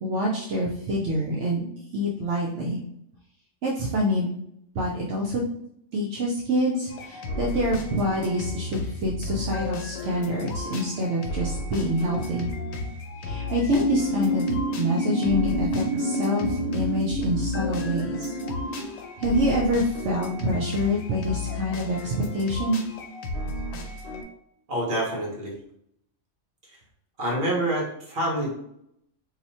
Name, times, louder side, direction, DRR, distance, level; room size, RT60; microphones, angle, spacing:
voice 1, 0.0-2.8 3.6-4.3 4.7-5.4 5.9-12.5 13.2-18.3 19.2-22.8, equal, 75° right, -3 dB, 0.9 m, -26 dB
sound 1, 6.9-24.2, left 2 dB, 70° left, 0.8 m, -34 dB
sound 2, 13.7-18.8, equal, 35° left, 0.8 m, -28 dB
voice 2, 24.7-25.5 27.2-28.5, right 1 dB, 50° right, -3 dB, 1.3 m, -27 dB
2.9 x 2.3 x 4.1 m, 0.74 s
omnidirectional pair, 1.3 m